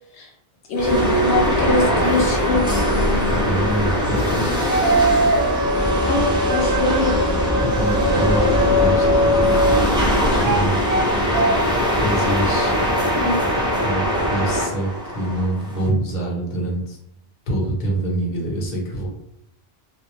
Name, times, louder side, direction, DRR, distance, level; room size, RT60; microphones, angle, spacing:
voice 1, 0.7-2.6 6.1-7.2 13.2-13.4, left 2 dB, 80° left, -1 dB, 0.9 m, -22 dB
sound 1, 0.8-15.9, equal, 5° right, 0.5 m, -21 dB
voice 2, 3.3-4.6 7.6-9.4 10.3-10.8 12.0-12.7 13.8-17.0 17.5-19.1, right 1 dB, 45° left, -3 dB, 0.8 m, -25 dB
sound 2, 4.7-9.8 10.4-11.0 11.3-11.5, right 1 dB, 85° right, 1.0 m, -21 dB
2.3 x 2.0 x 2.9 m, 0.76 s
omnidirectional pair, 1.1 m